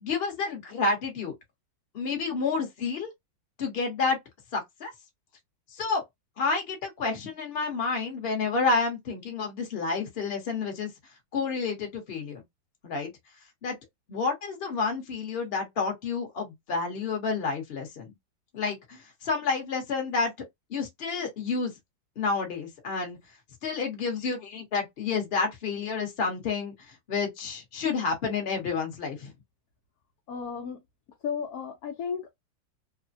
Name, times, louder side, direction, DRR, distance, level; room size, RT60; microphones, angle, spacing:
voice 1, 0.0-1.3 1.9-3.1 3.6-4.2 4.5-4.9 5.7-6.0 6.4-10.9 11.3-12.4 12.8-13.1 13.6-13.7 14.1-18.1 18.5-20.3 20.7-21.7 22.2-23.2 23.6-29.3, left 4 dB, 40° left, 1.0 m, -29 dB
voice 2, 30.3-30.8 31.2-32.3, left 6 dB, 65° left, 0.9 m, -33 dB
3.1 x 2.1 x 2.6 m
omnidirectional pair, 2.1 m